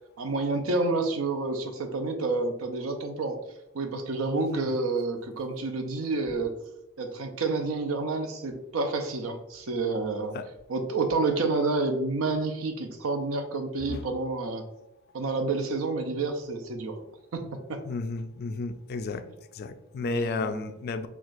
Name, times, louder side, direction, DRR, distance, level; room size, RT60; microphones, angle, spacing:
voice 1, 0.2-3.4 3.7-6.5 7.0-10.3 10.7-14.6 15.1-17.0 17.3-17.4 17.7-17.8 20.0-20.7, right 3 dB, 90° right, 5 dB, 0.6 m, -29 dB
voice 2, 4.3-4.7 10.3-10.5 13.8-14.0 17.8-19.2 19.5-21.1, left 4 dB, 50° left, 9 dB, 0.3 m, -33 dB
5.8 x 2.4 x 2.5 m, 0.88 s
head